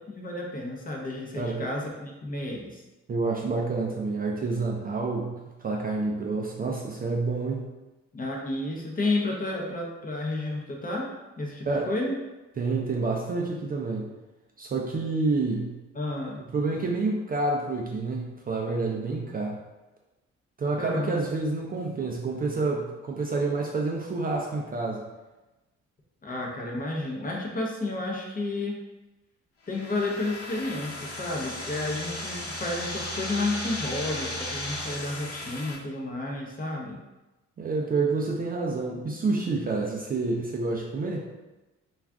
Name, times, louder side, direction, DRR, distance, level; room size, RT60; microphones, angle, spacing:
voice 1, 0.1-2.8 8.1-11.1 11.4-12.2 15.9-16.4 20.8-21.2 26.2-28.8 29.7-37.0, left 2 dB, 30° left, -1 dB, 0.6 m, -31 dB
voice 2, 1.4-1.7 3.1-7.6 11.7-11.9 12.6-14.1 14.6-15.8 16.5-19.6 20.6-25.0 37.6-41.3, right 3 dB, 30° right, -1 dB, 0.4 m, -28 dB
sound 1, 29.6-35.7, left 1 dB, 50° left, 0.9 m, -35 dB
2.4 x 2.4 x 3.4 m, 1.1 s
cardioid pair, 90°, 30 cm